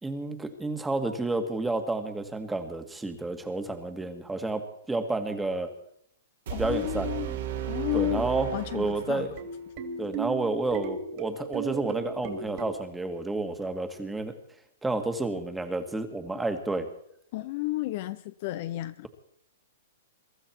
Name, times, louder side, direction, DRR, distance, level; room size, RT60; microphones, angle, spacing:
voice 1, 0.0-4.6 4.9-5.7 6.6-7.1 7.9-8.5 8.7-9.3 10.0-14.3 14.8-16.9, right 2 dB, 5° right, 7 dB, 1.9 m, -30 dB
voice 2, 6.5-7.4 7.7-9.3 17.3-19.1, left 18 dB, 50° left, 12 dB, 0.8 m, -32 dB
sound 1, 6.5-9.4, right 9 dB, 65° right, 3.2 m, -34 dB
sound 2, 9.0-12.6, right 6 dB, 40° right, 3.2 m, -36 dB
23.0 x 13.0 x 4.6 m, 0.71 s
hypercardioid pair, 140°, 0 cm